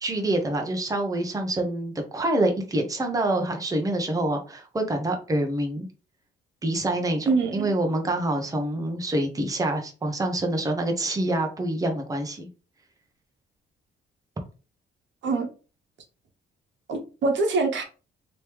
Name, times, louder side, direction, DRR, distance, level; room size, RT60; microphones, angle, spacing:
voice 1, 0.0-5.9 6.6-12.5, right 1 dB, 15° right, 0.8 m, -26 dB
voice 2, 7.3-7.7 15.2-15.5 16.9-17.8, right 3 dB, 70° right, 1.0 m, -24 dB
3.0 x 3.0 x 3.3 m
cardioid pair, 90°, 20 cm